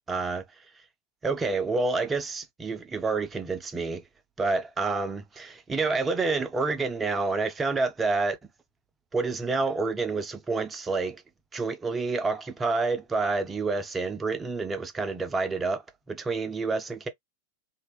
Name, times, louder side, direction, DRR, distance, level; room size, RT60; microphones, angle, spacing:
voice 1, 0.1-0.4 1.2-4.0 4.4-8.4 9.1-11.2 11.5-15.8 16.1-17.1, right 3 dB, 15° right, 0.6 m, -28 dB
2.8 x 2.6 x 3.1 m
figure-of-eight pair, 90°, 0 cm